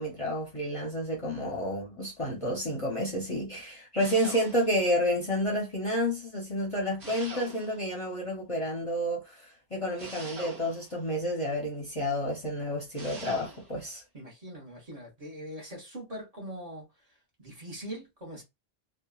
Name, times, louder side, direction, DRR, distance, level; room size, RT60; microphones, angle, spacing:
voice 1, 0.0-14.0, equal, 35° left, 0.7 m, -30 dB
sound 1, 4.0-4.9 7.0-8.0 10.0-11.0 13.0-13.7, right 2 dB, 75° right, 1.5 m, -43 dB
voice 2, 14.1-16.8 17.4-18.4, equal, 35° right, 1.0 m, -42 dB
2.8 x 2.2 x 2.3 m
omnidirectional pair, 1.1 m